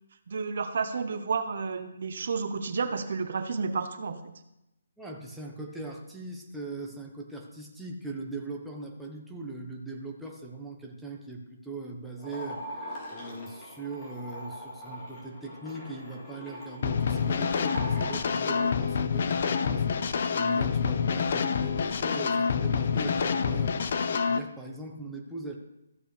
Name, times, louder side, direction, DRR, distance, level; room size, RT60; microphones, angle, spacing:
voice 1, 0.3-4.3, right 5 dB, 55° right, 9 dB, 0.8 m, -31 dB
voice 2, 5.0-24.0 24.3-25.6, right 2 dB, ahead, -2 dB, 1.0 m, -40 dB
sound 1, 12.2-18.7, equal, 20° left, 2.9 m, -42 dB
sound 2, 16.8-24.4, left 6 dB, 50° left, 0.6 m, -27 dB
14.5 x 7.4 x 3.3 m, 0.89 s
hypercardioid pair, 160°, 0 cm